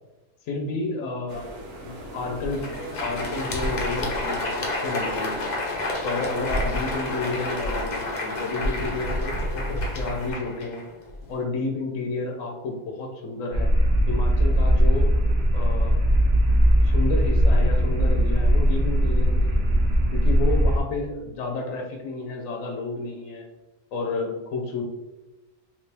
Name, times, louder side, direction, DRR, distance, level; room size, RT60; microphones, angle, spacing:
voice 1, 0.4-1.4 1.8-2.6 3.0-5.5 6.0-10.8 11.3-13.7 14.1-15.1 15.5-16.0 16.5-19.7 20.1-23.5 23.9-24.8, left 3 dB, 70° left, 2 dB, 0.9 m, -31 dB
sound 1, 1.3-10.3, equal, 85° right, 1.2 m, -34 dB
Crowd, 2.5-11.4, left 2 dB, 50° left, 0.5 m, -31 dB
sound 2, 13.5-20.8, equal, 55° right, 0.9 m, -19 dB
3.3 x 2.9 x 3.2 m, 1.1 s
omnidirectional pair, 1.5 m